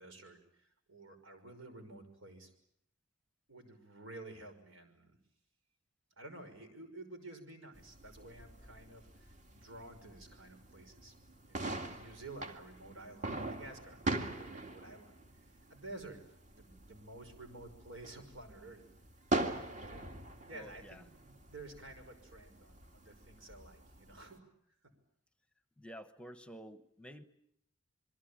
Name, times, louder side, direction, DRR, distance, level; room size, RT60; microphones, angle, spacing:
voice 1, 0.0-2.5 3.5-5.2 6.2-11.1 11.4-16.2 16.5-18.8 19.9-20.2 20.4-24.5 24.8-24.9, right 2 dB, 85° right, 7 dB, 5.9 m, -52 dB
sound 1, 7.7-24.4, right 2 dB, 40° right, 2.1 m, -43 dB
voice 2, 20.5-21.0 25.8-27.2, equal, 5° left, 11 dB, 1.0 m, -51 dB
27.5 x 22.5 x 8.8 m, 0.74 s
head